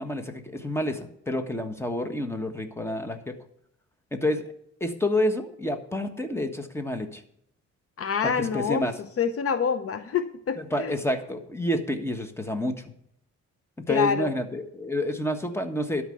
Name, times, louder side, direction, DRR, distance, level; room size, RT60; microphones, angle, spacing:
voice 1, 0.0-3.4 4.1-4.4 4.8-7.2 8.2-8.9 10.6-12.7 13.9-16.0, left 1 dB, 10° left, 7 dB, 1.4 m, -29 dB
voice 2, 8.0-8.9 9.2-10.9 13.9-14.3, left 6 dB, 50° left, 10 dB, 0.8 m, -26 dB
12.0 x 5.1 x 7.9 m, 0.73 s
cardioid pair, 90°, 30 cm